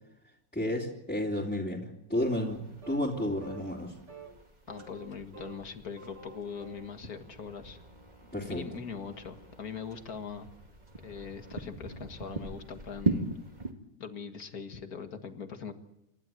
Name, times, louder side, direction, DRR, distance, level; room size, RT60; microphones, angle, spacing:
voice 1, 0.5-3.9 8.3-8.6, left 1 dB, 5° left, -6 dB, 3.2 m, -32 dB
sound 1, 2.1-2.6 2.8-3.1 3.4-3.8 4.1-4.3 4.7-5.7 5.9-6.9, right 5 dB, 55° right, 4.2 m, -48 dB
sound 2, 2.2-13.7, right 3 dB, 25° right, 2.3 m, -40 dB
voice 2, 4.7-7.8 8.4-10.5 11.0-13.3 14.0-15.7, left 6 dB, 55° left, 7 dB, 2.2 m, -41 dB
28.5 x 12.5 x 9.2 m, 0.87 s
omnidirectional pair, 1.9 m